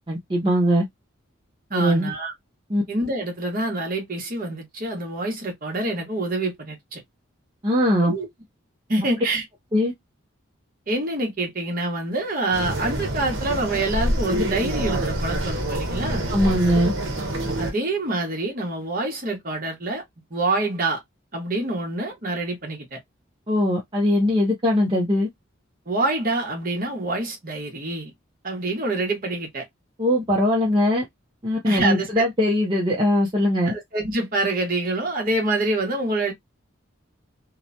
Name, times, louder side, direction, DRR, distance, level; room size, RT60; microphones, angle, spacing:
voice 1, 0.1-0.8 1.7-2.1 2.7-2.8 7.6-8.1 9.7-9.9 16.3-16.9 23.5-25.3 30.0-31.1 31.4-33.7, left 1 dB, 25° right, 0.6 m, -20 dB
voice 2, 1.7-2.3 2.9-7.0 8.0-8.3 8.9-9.4 10.9-16.3 17.6-20.0 20.3-21.0 21.3-23.0 25.9-28.1 28.4-29.7 31.6-32.1 33.7-36.3, right 2 dB, 45° right, 1.0 m, -26 dB
sound 1, 12.5-17.7, right 1 dB, 70° right, 0.8 m, -26 dB
2.9 x 2.1 x 2.5 m
head